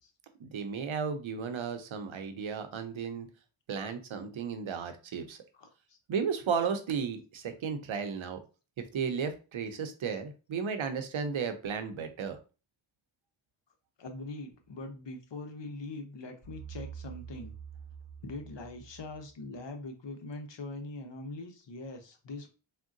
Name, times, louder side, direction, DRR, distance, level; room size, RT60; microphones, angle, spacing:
voice 1, 0.4-3.3 3.7-5.4 6.1-8.4 8.9-12.4, right 6 dB, 70° right, 8 dB, 0.6 m, -34 dB
voice 2, 5.5-6.0 14.0-17.6 18.2-22.5, left 2 dB, 60° left, 6 dB, 0.8 m, -42 dB
sound 1, 16.4-19.5, right 7 dB, 35° left, 1.6 m, -46 dB
3.6 x 2.2 x 2.5 m, 0.33 s
cardioid pair, 45°, 50 cm